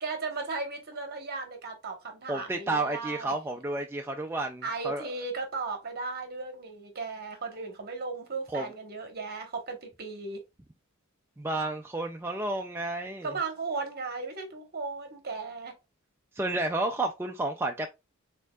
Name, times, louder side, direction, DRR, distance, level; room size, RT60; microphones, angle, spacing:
voice 1, 0.0-3.3 4.6-10.4 13.2-15.8, right 4 dB, 50° right, 1.1 m, -36 dB
voice 2, 2.3-5.1 8.5-8.6 11.4-13.3 16.4-17.9, right 2 dB, 10° right, 0.3 m, -31 dB
4.4 x 3.5 x 2.3 m
head